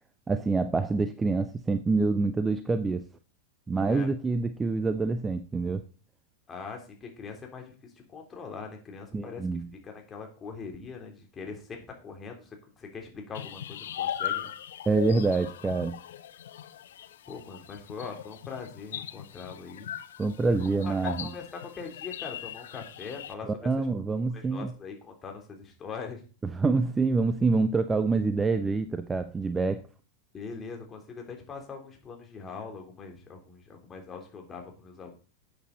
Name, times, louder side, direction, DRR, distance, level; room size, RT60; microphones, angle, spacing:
voice 1, 0.3-3.1 3.7-5.8 9.1-9.7 14.9-16.0 20.2-21.3 23.5-24.7 26.5-29.9, right 3 dB, 15° right, 0.7 m, -26 dB
voice 2, 6.5-14.5 17.3-19.9 20.5-23.7 24.3-26.2 30.3-35.1, left 5 dB, 20° left, 3.4 m, -42 dB
sound 1, 13.3-23.3, left 10 dB, 60° left, 0.8 m, -39 dB
12.0 x 8.5 x 4.1 m
figure-of-eight pair, 90°, 0 cm